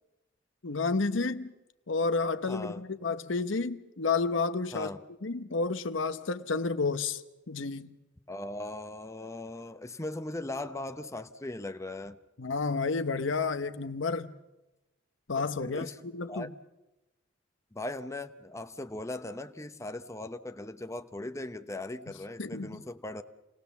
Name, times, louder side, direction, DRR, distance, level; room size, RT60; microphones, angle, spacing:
voice 1, 0.6-1.5 1.9-4.9 5.2-7.2 7.5-7.9 12.4-14.3 15.3-16.5 22.4-22.8, left 4 dB, 80° left, 0.9 m, -30 dB
voice 2, 2.5-2.8 4.7-5.0 8.3-12.2 15.4-16.0 16.3-16.5 17.7-23.2, left 2 dB, 15° left, 0.9 m, -39 dB
28.5 x 19.0 x 7.1 m
head